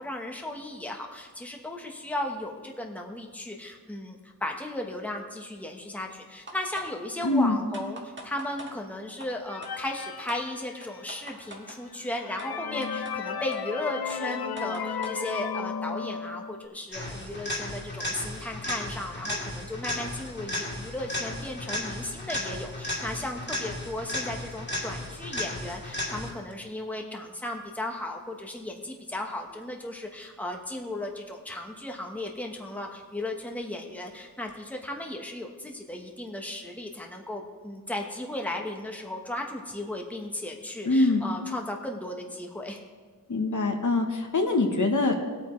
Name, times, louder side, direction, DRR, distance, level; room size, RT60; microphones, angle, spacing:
voice 1, 0.0-42.8, left 1 dB, 5° left, 1 dB, 1.2 m, -36 dB
sound 1, 6.5-6.9 7.2-7.3 7.7-8.7 9.2-9.3 9.6-9.9 10.3-10.4 10.8-11.8 12.4-12.5 12.8-13.1 13.5-13.6 14.1-15.2, right 1 dB, 30° right, 1.8 m, -43 dB
voice 2, 7.2-7.6 40.8-41.2 43.3-45.3, left 2 dB, 55° left, 3 dB, 1.2 m, -24 dB
sound 2, 9.5-11.1 11.7-11.8 12.1-16.7, left 6 dB, 90° left, 0.7 m, -34 dB
sound 3, 16.9-26.5 34.5-34.6, left 1 dB, 30° left, 2.3 m, -34 dB
19.5 x 8.5 x 3.2 m, 1.5 s
wide cardioid pair, 110°, 37 cm